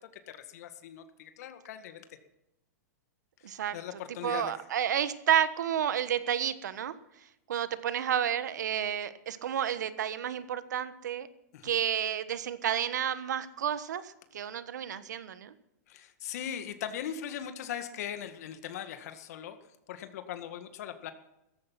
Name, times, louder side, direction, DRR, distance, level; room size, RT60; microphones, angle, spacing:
voice 1, 0.3-2.0 3.4-4.5 11.5-11.8 15.9-19.6 19.9-21.1, left 9 dB, 65° left, 8 dB, 1.9 m, -40 dB
voice 2, 3.4-3.8 4.2-6.9 7.5-11.3 11.6-14.0 14.3-15.5, right 9 dB, 85° right, 13 dB, 1.3 m, -30 dB
16.5 x 14.5 x 5.9 m, 0.87 s
hypercardioid pair, 145°, 9 cm